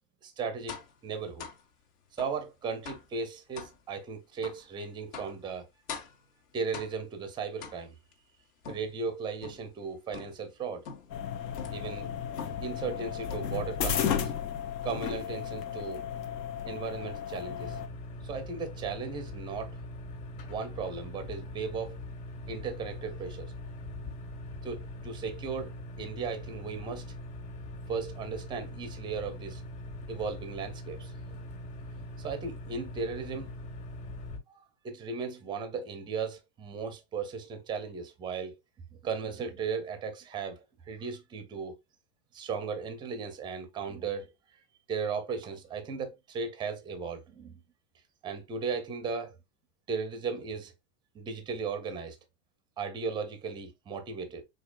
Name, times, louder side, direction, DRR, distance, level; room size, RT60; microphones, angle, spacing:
voice 1, 0.2-1.5 2.1-5.7 6.5-7.9 8.7-10.9 11.7-12.1 12.6-14.3 14.8-16.0 16.7-17.8 18.2-19.8 20.5-22.0 22.5-23.5 24.6-27.1 27.9-29.6 30.1-31.1 32.2-33.5 34.5-38.6 39.0-41.8 42.3-44.3 44.9-47.6 48.2-49.4 49.9-50.7 51.1-52.2 52.8-54.4, right 5 dB, 10° right, 0.4 m, -36 dB
sound 1, 0.7-1.0 1.4-1.6 2.2-2.4 2.9-3.1 3.6-3.8 4.4-4.7 5.1-5.4 5.9-6.3 6.7-7.1 7.6-8.1 8.6-9.7 10.1-10.5 10.9-11.2 11.6-11.9 12.4-12.7 13.3-13.6 14.1-14.6 14.9-15.4, left 6 dB, 65° left, 1.7 m, -44 dB
sound 2, 11.1-17.9, left 8 dB, 80° left, 1.2 m, -34 dB
sound 3, 17.6-34.4, left 1 dB, 45° left, 1.9 m, -42 dB
5.1 x 3.8 x 2.3 m
supercardioid pair, 145°, 49 cm